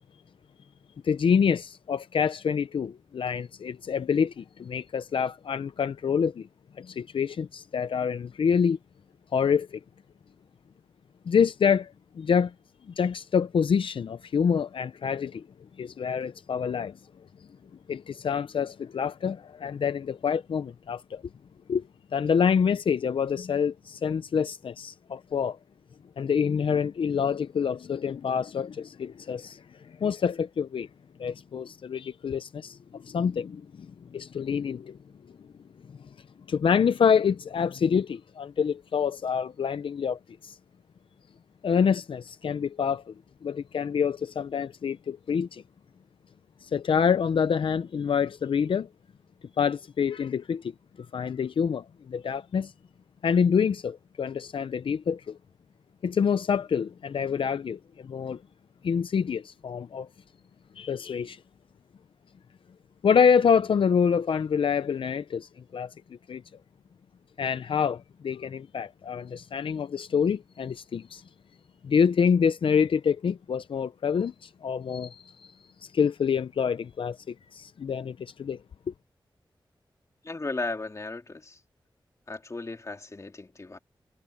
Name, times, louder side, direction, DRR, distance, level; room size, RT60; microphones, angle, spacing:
voice 1, 1.0-6.5 6.8-8.8 9.3-9.8 11.3-12.5 12.9-15.5 15.8-17.0 17.9-21.2 21.7-21.8 22.1-25.6 26.2-30.9 31.2-35.0 36.5-40.6 41.6-43.1 43.4-45.6 46.6-48.9 49.6-50.7 51.0-52.7 53.2-55.4 56.0-58.4 58.8-60.1 60.8-61.4 63.0-65.9 66.3-66.4 67.4-71.2 71.8-75.5 75.8-78.6 78.9-79.0, left 6 dB, 80° left, 0.5 m, -26 dB
voice 2, 80.2-81.6 82.3-83.8, left 3 dB, 35° left, 3.1 m, -35 dB
wide cardioid pair, 95°, 9 cm